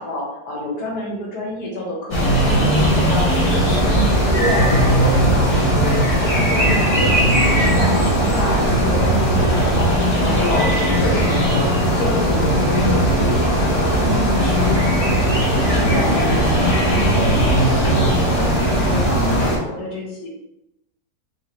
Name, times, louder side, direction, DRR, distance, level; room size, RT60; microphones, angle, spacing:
voice 1, 0.0-3.6 4.4-11.7 11.9-13.8 14.5-14.8 15.6-20.3, left 1 dB, 75° left, -3 dB, 1.6 m, -28 dB
sound 1, 2.1-19.6, equal, 30° left, 0.7 m, -17 dB
voice 2, 2.4-3.1 3.4-4.0 14.0-15.4, equal, 45° right, -8 dB, 0.7 m, -30 dB
4.0 x 2.8 x 2.9 m, 0.90 s
omnidirectional pair, 1.7 m